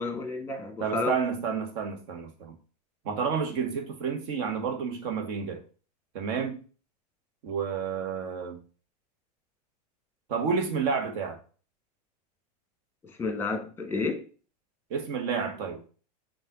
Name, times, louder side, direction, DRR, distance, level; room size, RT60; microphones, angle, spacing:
voice 1, 0.0-1.1 13.0-14.2, left 3 dB, 10° left, 1.2 m, -31 dB
voice 2, 0.8-2.6 3.0-5.6 6.1-6.6 7.4-8.6 10.3-11.4 14.9-15.9, right 6 dB, 60° right, 1.2 m, -30 dB
5.4 x 2.6 x 3.7 m
hypercardioid pair, 100°, 21 cm